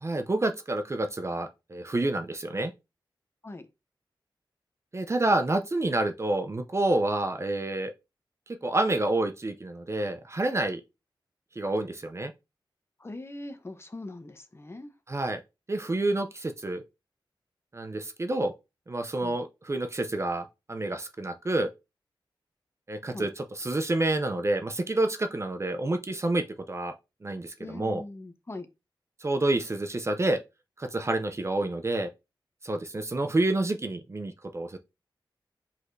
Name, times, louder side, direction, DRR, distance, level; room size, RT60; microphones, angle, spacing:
voice 1, 0.0-2.7 4.9-7.9 8.5-10.8 11.6-12.3 15.1-15.4 15.7-16.8 17.7-18.5 18.9-21.7 22.9-26.9 27.2-28.0 29.2-30.4 30.8-32.1 32.6-34.8, right 2 dB, 35° right, 0.5 m, -28 dB
voice 2, 13.0-14.9 19.2-19.4 23.1-23.3 27.6-28.7, left 2 dB, 30° left, 0.8 m, -41 dB
4.8 x 4.1 x 2.6 m
wide cardioid pair, 70°, 9 cm